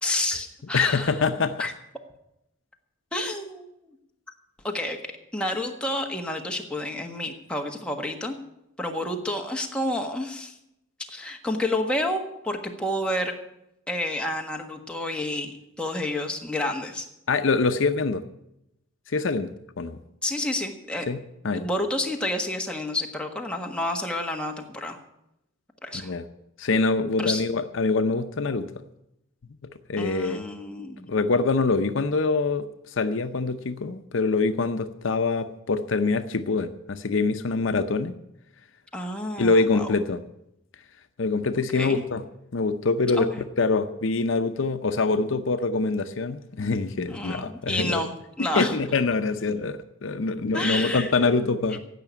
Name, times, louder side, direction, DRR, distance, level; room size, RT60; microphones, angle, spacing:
voice 1, 0.0-1.2 1.6-1.7 3.1-3.7 4.6-5.0 5.3-8.4 8.8-10.5 11.1-13.3 13.9-17.1 20.2-21.1 21.5-25.0 25.8-26.1 27.2-27.4 30.0-31.1 38.9-39.9 41.7-42.1 43.2-43.4 47.1-48.8 50.5-51.1, left 1 dB, 5° left, 1 dB, 1.5 m, -29 dB
voice 2, 0.7-1.6 17.3-18.2 19.1-20.0 21.1-21.2 21.4-21.6 25.9-26.2 26.6-28.7 29.9-30.4 31.1-32.6 33.0-38.1 39.4-40.2 41.2-42.2 42.5-43.3 43.6-48.0 48.4-51.8, left 3 dB, 65° left, 9 dB, 0.7 m, -24 dB
16.0 x 5.8 x 9.6 m, 0.84 s
head